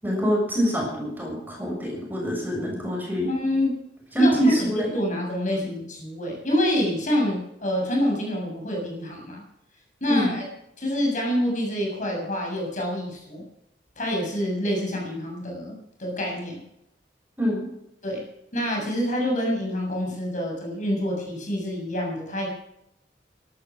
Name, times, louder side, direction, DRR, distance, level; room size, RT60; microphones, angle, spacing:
voice 1, 0.0-3.3 4.1-4.9 10.1-10.4 17.4-17.6, equal, 10° right, -1 dB, 6.8 m, -25 dB
voice 2, 3.3-3.8 4.1-9.4 10.0-10.5 10.8-13.4 14.0-16.6 18.0-18.2 18.5-22.5, equal, 45° left, 0 dB, 7.2 m, -27 dB
17.5 x 13.0 x 6.2 m, 0.78 s
head